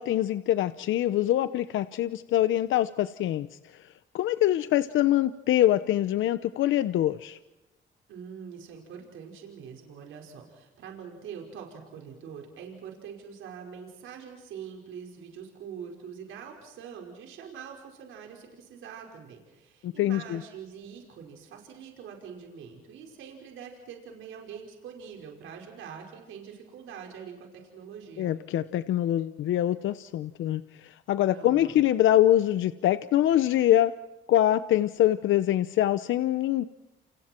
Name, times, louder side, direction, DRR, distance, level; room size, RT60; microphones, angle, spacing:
voice 1, 0.0-3.5 3.7-3.9 4.1-7.4 19.8-20.4 28.2-33.9 34.3-36.6, left 12 dB, 80° left, 13 dB, 0.9 m, -24 dB
voice 2, 8.1-28.3 31.3-31.8, right 7 dB, 85° right, 1 dB, 5.3 m, -44 dB
29.5 x 29.5 x 4.5 m, 1.0 s
cardioid pair, 90°, 20 cm